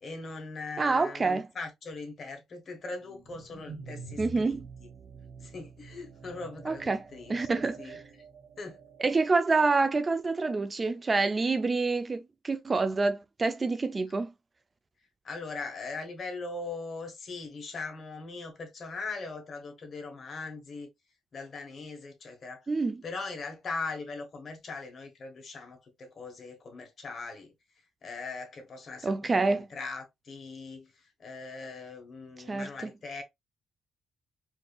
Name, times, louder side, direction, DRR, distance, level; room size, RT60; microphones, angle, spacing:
voice 1, 0.0-4.9 5.4-8.0 8.6-8.8 15.2-20.9 21.3-22.7 23.0-27.5 28.0-33.2, left 3 dB, 50° left, 1.3 m, -40 dB
voice 2, 0.8-1.5 4.2-4.7 6.6-7.0 7.3-8.0 9.0-14.3 22.7-23.0 29.0-29.7 32.5-32.9, right 3 dB, 30° right, 0.4 m, -27 dB
sound 1, 3.0-9.3, right 4 dB, 55° right, 1.4 m, -47 dB
4.5 x 2.7 x 2.3 m
cardioid pair, 90°, 0 cm